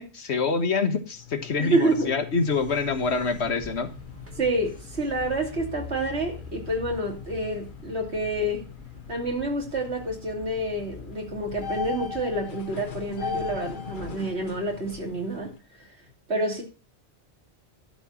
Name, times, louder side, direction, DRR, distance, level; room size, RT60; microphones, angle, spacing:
voice 1, 0.0-3.9, left 4 dB, 85° left, 1.5 m, -26 dB
sound 1, 1.1-15.6, left 6 dB, 50° left, 1.1 m, -40 dB
voice 2, 1.6-2.1 4.4-8.7 9.1-15.5 16.3-16.6, right 1 dB, 80° right, 2.9 m, -28 dB
sound 2, 2.6-12.3, left 2 dB, 15° right, 1.6 m, -45 dB
12.0 x 4.5 x 6.9 m
omnidirectional pair, 1.1 m